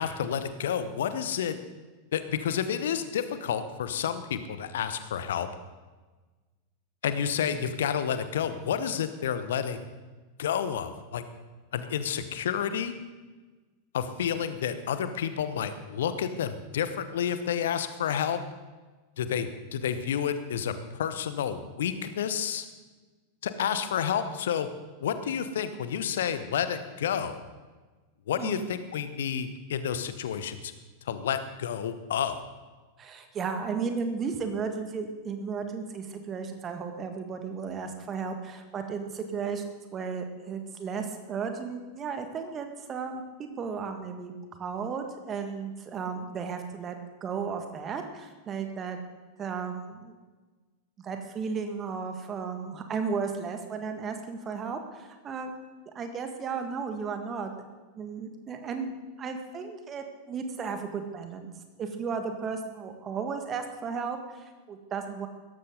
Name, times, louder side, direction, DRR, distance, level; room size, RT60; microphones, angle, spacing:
voice 1, 0.0-1.6 2.1-5.5 7.0-9.8 10.4-11.2 11.7-12.9 13.9-18.4 19.2-22.7 23.4-24.7 25.0-27.4 28.3-30.7 31.1-32.4, left 8 dB, 60° left, 11 dB, 1.1 m, -30 dB
voice 2, 33.0-44.3 44.6-49.0 49.4-50.1 51.0-55.5 56.0-57.5 58.0-61.5 61.8-65.3, right 5 dB, 25° right, 6 dB, 1.9 m, -34 dB
17.0 x 13.5 x 3.9 m, 1.3 s
figure-of-eight pair, 90°, 0 cm